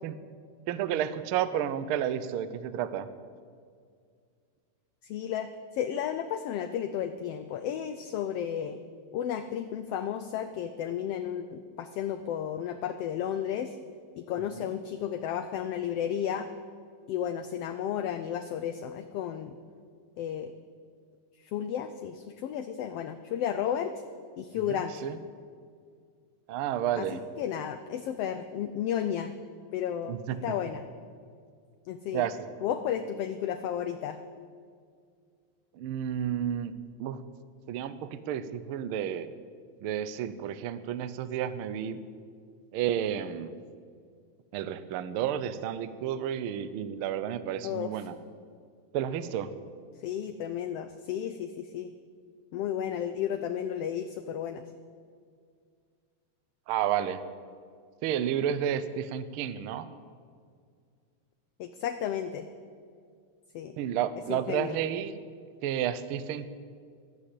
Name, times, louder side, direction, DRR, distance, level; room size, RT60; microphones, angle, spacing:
voice 1, 0.7-3.1 14.6-14.7 24.7-25.2 26.5-27.2 30.1-30.4 32.1-32.5 35.7-36.7 37.0-37.2 37.7-39.3 39.8-42.0 42.7-43.5 44.5-48.2 48.9-49.5 56.7-57.2 58.0-59.9 63.8-65.1 65.6-66.5, right 10 dB, 85° right, 13 dB, 1.2 m, -31 dB
voice 2, 5.0-8.8 9.1-13.8 14.2-16.5 17.1-19.6 20.2-20.6 21.4-23.9 24.4-24.9 26.9-27.1 27.4-29.3 29.7-30.9 31.9-32.2 32.6-34.2 47.6-47.9 50.0-51.9 52.5-54.7 61.6-62.5 63.5-63.8 64.3-64.8, left 9 dB, 75° left, 9 dB, 1.4 m, -33 dB
14.5 x 11.5 x 8.3 m, 2.1 s
omnidirectional pair, 3.3 m